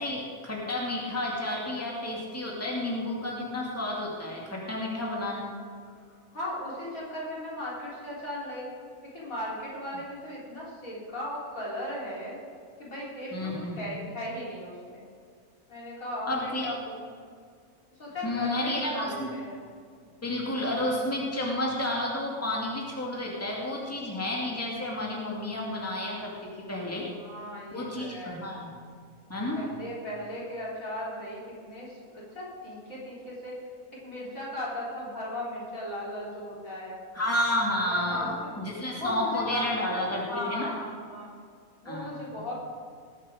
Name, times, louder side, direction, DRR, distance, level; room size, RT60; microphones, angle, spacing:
voice 1, 0.0-5.6 13.3-13.9 16.3-16.7 18.2-19.3 20.2-27.1 27.7-28.7 29.3-29.7 37.1-40.7 41.8-42.4, left 1 dB, 10° left, -3 dB, 2.3 m, -31 dB
voice 2, 6.3-8.7 9.1-12.4 12.8-13.3 13.8-15.0 15.7-16.7 17.0-17.1 18.0-19.6 27.2-28.4 29.6-33.5 34.0-37.0 38.1-38.3 39.0-39.7 40.3-41.4 41.8-42.5, left 1 dB, 70° left, -6 dB, 4.3 m, -37 dB
19.5 x 8.8 x 5.1 m, 2.1 s
omnidirectional pair, 1.5 m